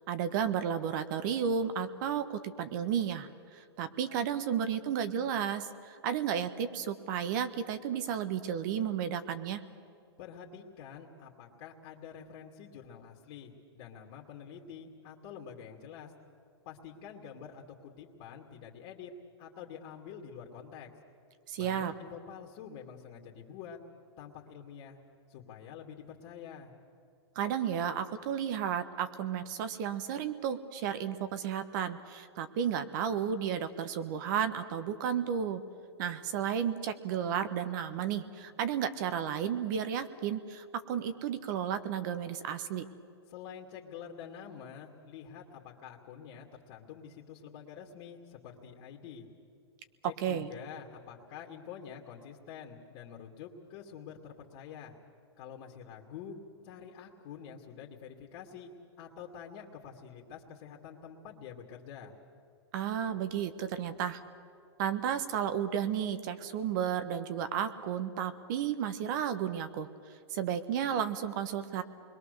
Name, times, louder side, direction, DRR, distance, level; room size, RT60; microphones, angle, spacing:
voice 1, 0.1-9.6 21.5-21.9 27.3-35.6 36.0-42.9 50.2-50.5 62.7-64.2 64.8-69.9 70.3-71.8, right 8 dB, 45° right, 11 dB, 1.3 m, -33 dB
voice 2, 10.2-16.1 16.6-19.1 19.4-20.9 21.6-23.8 24.2-25.0 25.3-26.7 43.3-49.3 50.0-54.9 55.4-56.3 56.6-58.7 59.0-62.1, left 8 dB, 45° left, -1 dB, 2.4 m, -47 dB
27.5 x 22.0 x 6.8 m, 2.4 s
hypercardioid pair, 145°, 14 cm